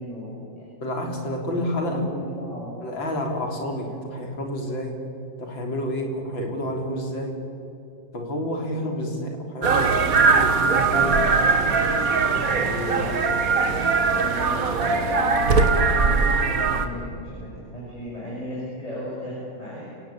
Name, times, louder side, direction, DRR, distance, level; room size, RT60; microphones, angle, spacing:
voice 1, 0.0-0.7 1.8-2.8 8.4-9.0 12.8-13.6 14.0-19.8, equal, 15° left, -6 dB, 7.6 m, -36 dB
voice 2, 0.8-2.1 2.8-5.0 5.4-7.3 8.1-11.2 12.2-13.2, equal, 65° left, 2 dB, 4.4 m, -29 dB
sound 1, 9.6-16.9, right 4 dB, 45° right, 1.9 m, -20 dB
29.0 x 17.5 x 8.9 m, 2.7 s
omnidirectional pair, 2.3 m